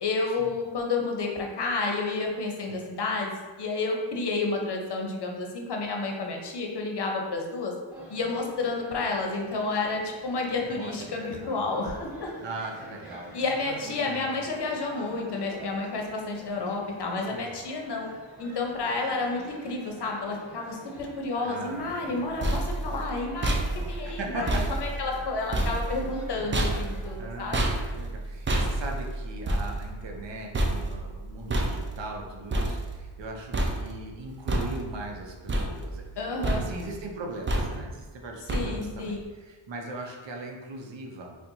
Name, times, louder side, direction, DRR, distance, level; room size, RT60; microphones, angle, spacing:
voice 1, 0.0-7.7 8.1-12.3 13.3-18.1 18.4-23.6 23.9-27.7 36.2-36.7 38.5-39.2, left 3 dB, 55° left, 1 dB, 0.7 m, -30 dB
sound 1, 7.9-27.1, right 1 dB, ahead, 1.0 m, -47 dB
voice 2, 10.6-11.6 12.4-13.8 14.1-14.3 17.3-17.5 21.4-22.6 24.1-24.6 27.2-41.3, right 2 dB, 60° right, 1 dB, 0.7 m, -39 dB
sound 2, 22.0-33.3 33.5-34.1 34.5-35.1 35.5-36.2 36.4-37.0 37.5-38.0 38.5-39.0, right 1 dB, 25° right, 0.4 m, -30 dB
4.3 x 2.2 x 2.6 m, 1.4 s
cardioid pair, 70°, 50 cm